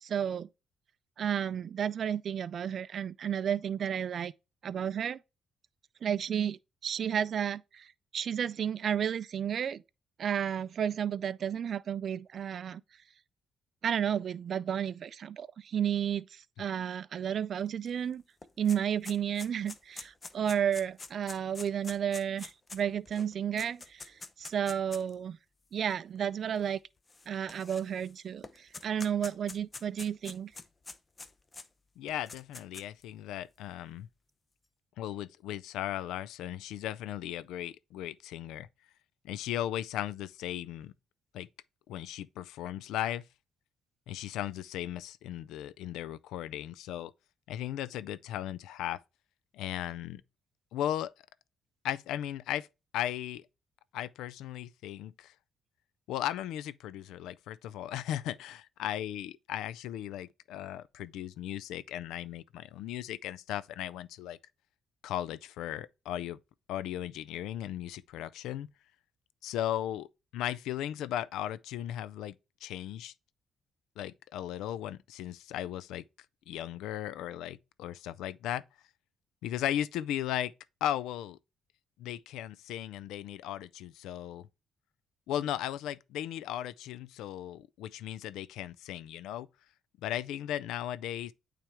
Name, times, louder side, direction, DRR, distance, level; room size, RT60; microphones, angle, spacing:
voice 1, 0.0-0.5 1.2-4.3 4.6-5.2 6.0-9.8 10.2-12.8 13.8-18.2 18.6-25.4 25.7-26.8 27.3-30.5, right 8 dB, 55° right, 0.3 m, -32 dB
sound 1, 17.9-18.0 18.2-25.1 25.9-26.0 27.1-28.1 28.4-31.7 32.1-33.0, left 3 dB, 30° left, 0.7 m, -46 dB
voice 2, 32.0-34.1 35.0-38.7 39.2-40.9 41.3-41.5 41.9-43.3 44.1-47.1 47.5-49.0 49.5-50.2 50.7-51.1 51.8-52.7 52.9-53.4 53.9-55.3 56.1-64.4 65.0-66.4 66.7-68.7 69.4-72.4 72.6-73.1 74.0-76.0 76.5-78.6 79.4-80.5 80.8-81.4 82.0-84.5 85.3-89.5 90.0-91.3, left 12 dB, 90° left, 0.3 m, -36 dB
8.9 x 3.4 x 3.4 m
cardioid pair, 90°, 0 cm